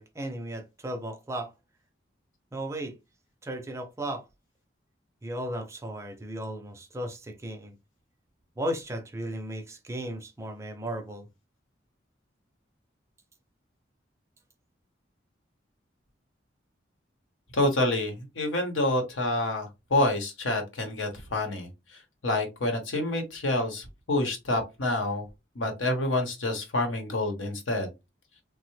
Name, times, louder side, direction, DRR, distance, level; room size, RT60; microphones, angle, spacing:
voice 1, 0.0-1.5 2.5-3.0 3.4-4.2 5.2-7.7 8.6-11.3, right 1 dB, 15° right, 0.4 m, -35 dB
voice 2, 17.5-21.7 22.2-25.2 25.5-27.9, left 1 dB, 85° left, 1.0 m, -28 dB
3.3 x 2.0 x 3.1 m
head